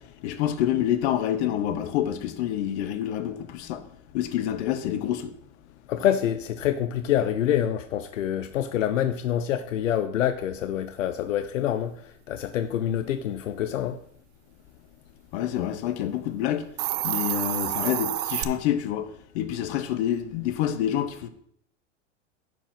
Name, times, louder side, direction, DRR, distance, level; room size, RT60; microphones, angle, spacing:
voice 1, 0.0-3.9 4.1-5.3 15.3-16.7 17.0-21.3, left 11 dB, 60° left, 1.1 m, -27 dB
voice 2, 5.9-14.0, left 10 dB, 90° left, 0.6 m, -26 dB
Hiss, 16.6-18.4, right 13 dB, 40° right, 0.7 m, -28 dB
9.9 x 4.6 x 5.7 m
hypercardioid pair, 110°, 37 cm